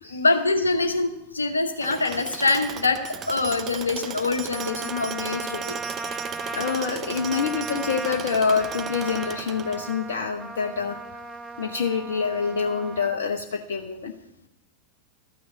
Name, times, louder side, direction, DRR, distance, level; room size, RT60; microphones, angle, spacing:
voice 1, 0.1-3.0 3.3-5.7, left 3 dB, 75° left, 7 dB, 1.1 m, -24 dB
Tools, 1.8-10.1, right 9 dB, 30° right, 0.5 m, -37 dB
Trumpet, 4.5-13.2, right 3 dB, 10° right, 0.9 m, -36 dB
voice 2, 6.2-11.0 11.6-14.1, left 5 dB, 60° left, 3 dB, 0.8 m, -26 dB
13.0 x 6.2 x 7.3 m, 0.90 s
figure-of-eight pair, 90°, 0 cm